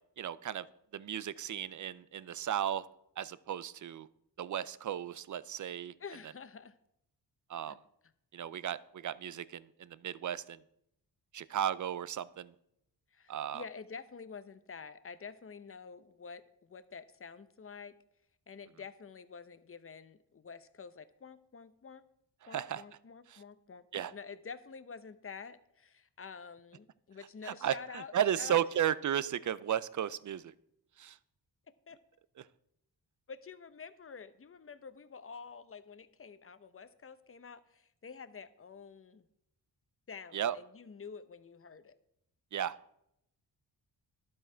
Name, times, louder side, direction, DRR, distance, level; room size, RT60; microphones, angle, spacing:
voice 1, 0.2-0.7 0.9-2.8 3.2-4.1 4.4-5.9 7.5-7.8 8.3-10.6 11.3-12.5 13.3-13.6 22.4-22.8 23.3-23.4 23.9-24.1 27.5-27.8 28.1-30.5 31.0-31.2 40.3-40.6 42.5-42.8, right 10 dB, 45° right, 17 dB, 0.5 m, -34 dB
voice 2, 6.0-6.8 7.7-7.8 13.1-17.9 18.5-22.0 22.5-28.6 31.9-32.0 33.3-39.3 40.1-41.9, left 5 dB, 30° left, 12 dB, 0.7 m, -48 dB
11.5 x 7.5 x 4.4 m, 0.78 s
cardioid pair, 85°, 42 cm